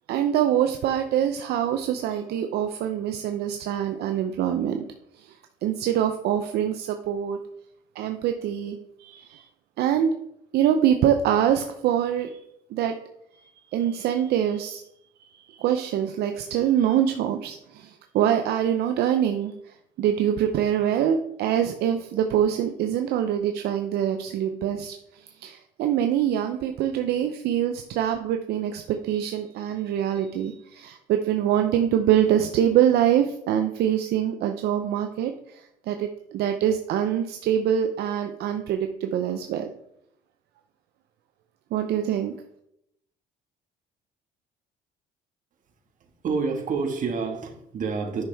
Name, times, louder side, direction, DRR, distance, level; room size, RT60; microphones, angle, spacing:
voice 1, 0.1-4.9 5.1-7.4 7.9-9.5 9.8-10.1 10.5-12.4 12.7-12.9 13.7-14.8 15.2-39.7 41.7-42.3, right 10 dB, 75° right, 6 dB, 0.6 m, -24 dB
voice 2, 46.0-48.2, right 5 dB, 50° right, 3 dB, 1.7 m, -28 dB
9.5 x 6.0 x 3.4 m, 0.79 s
cardioid pair, 110°, 17 cm